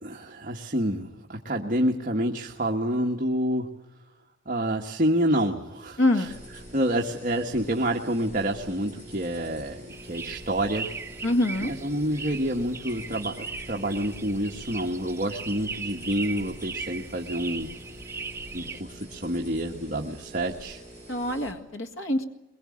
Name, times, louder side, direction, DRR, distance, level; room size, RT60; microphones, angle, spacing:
voice 1, 0.0-3.7 4.4-6.3 6.7-10.9 11.7-17.7 18.5-20.8, right 1 dB, 40° right, 1 dB, 1.4 m, -28 dB
voice 2, 6.0-6.3 11.2-11.7 21.1-22.2, left 1 dB, 85° left, 6 dB, 1.9 m, -25 dB
sound 1, 6.2-21.5, equal, 40° left, 7.0 m, -45 dB
sound 2, 9.9-18.8, right 4 dB, 15° right, 1.6 m, -39 dB
23.0 x 22.0 x 8.6 m, 0.96 s
head